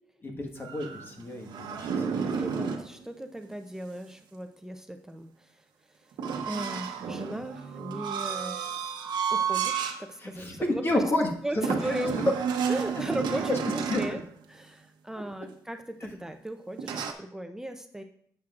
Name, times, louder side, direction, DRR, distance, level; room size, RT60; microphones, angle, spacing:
voice 1, 0.0-2.1 10.2-11.3 11.5-11.9 13.9-14.2 15.2-15.3, left 1 dB, 30° left, 2 dB, 1.5 m, -30 dB
sound 1, 0.6-2.9 6.2-10.0 10.5-10.6 11.6-14.2 16.8-17.1, right 6 dB, 80° right, 0.9 m, -31 dB
voice 2, 2.4-5.3 6.4-8.6 9.3-11.0 11.4-12.3 12.7-14.2 14.5-18.0, right 1 dB, 5° right, 5 dB, 0.6 m, -37 dB
10.5 x 7.4 x 2.5 m, 0.63 s
cardioid pair, 120°, 7 cm